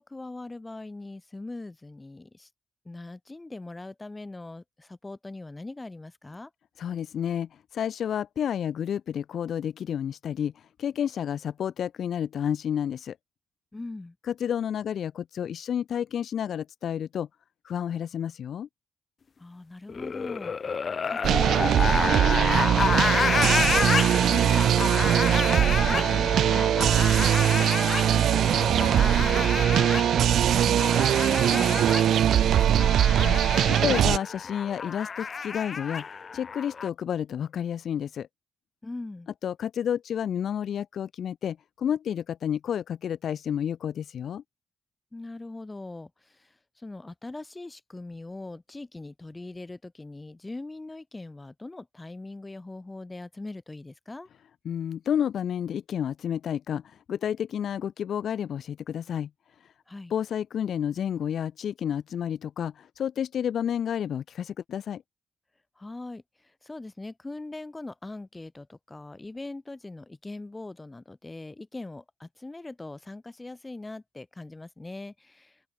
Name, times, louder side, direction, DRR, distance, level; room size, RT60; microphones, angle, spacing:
voice 1, 0.0-2.5 2.8-6.5 13.7-14.2 19.4-27.8 28.1-33.0 38.8-39.3 45.1-54.3 59.9-60.1 65.8-75.6, left 2 dB, 15° left, 2.3 m, -41 dB
voice 2, 6.8-13.2 14.4-17.3 17.6-18.7 33.1-33.4 33.7-38.3 39.4-44.4 54.6-59.3 60.1-65.0, left 9 dB, 60° left, 1.2 m, -30 dB
sound 1, 19.9-36.9, left 5 dB, 40° left, 0.4 m, -30 dB
sound 2, 21.2-34.2, right 10 dB, 70° right, 0.6 m, -21 dB
open air
cardioid pair, 90°, 0 cm